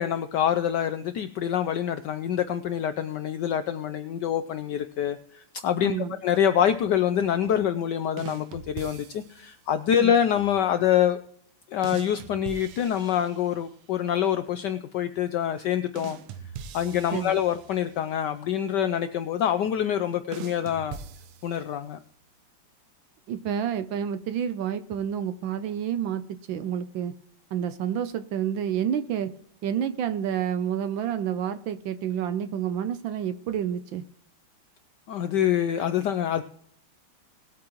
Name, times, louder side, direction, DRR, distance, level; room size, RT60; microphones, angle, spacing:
voice 1, 0.0-5.9 6.2-11.2 11.7-16.2 16.7-21.0 21.4-22.0 35.1-36.4, left 9 dB, 80° left, 10 dB, 0.9 m, -26 dB
voice 2, 5.8-6.2 10.0-10.1 17.1-17.4 23.3-26.2 26.5-27.1 27.5-29.3 29.6-34.0, right 9 dB, 70° right, 11 dB, 1.3 m, -29 dB
sound 1, 8.2-9.6 11.8-13.8 16.0-18.1 20.3-21.9, right 8 dB, 90° right, 1.7 m, -42 dB
19.5 x 8.5 x 3.0 m, 0.63 s
omnidirectional pair, 2.4 m